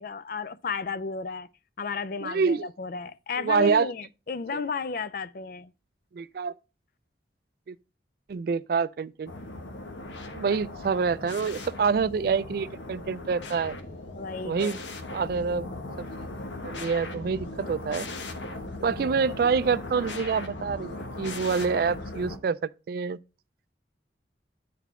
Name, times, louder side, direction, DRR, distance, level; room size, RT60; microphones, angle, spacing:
voice 1, 0.0-1.5 1.8-5.7 10.5-10.6 14.1-14.8, left 5 dB, 50° left, 0.4 m, -33 dB
voice 2, 2.2-2.7 3.4-3.9 4.5-4.7 6.1-6.5 7.7-7.8 8.3-9.3 10.3-13.8 14.4-14.8 15.1-15.7 16.6-18.1 18.8-23.2, right 5 dB, 55° right, 0.3 m, -26 dB
sound 1, 9.3-22.4, left 2 dB, 85° left, 0.9 m, -38 dB
9.1 x 4.1 x 4.2 m
head